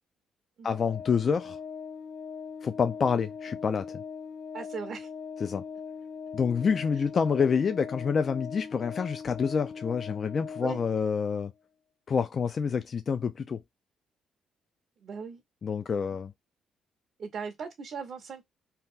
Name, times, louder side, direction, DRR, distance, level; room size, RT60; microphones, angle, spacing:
voice 1, 0.6-1.6 2.6-3.9 5.4-5.6 6.3-11.5 12.1-13.6 15.6-16.3, left 6 dB, 45° left, 0.3 m, -27 dB
Organ, 0.7-11.4, left 6 dB, 85° left, 1.0 m, -41 dB
voice 2, 4.5-5.1 6.9-7.0 10.6-10.8 15.0-15.4 17.2-18.4, right 5 dB, 55° right, 0.6 m, -38 dB
2.8 x 2.3 x 3.5 m
cardioid pair, 90°, 0 cm